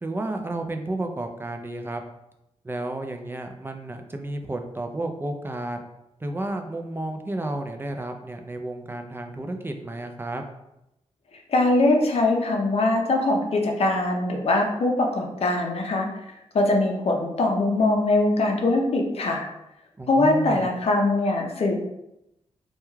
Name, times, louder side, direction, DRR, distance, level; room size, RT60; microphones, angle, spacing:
voice 1, 0.0-2.0 2.6-5.8 6.2-10.5 20.0-20.7, right 2 dB, 20° right, 4 dB, 0.3 m, -32 dB
voice 2, 11.5-16.1 16.5-19.5 20.1-21.7, left 2 dB, 55° left, 1 dB, 0.5 m, -22 dB
2.2 x 2.2 x 3.1 m, 0.87 s
cardioid pair, 65°, 12 cm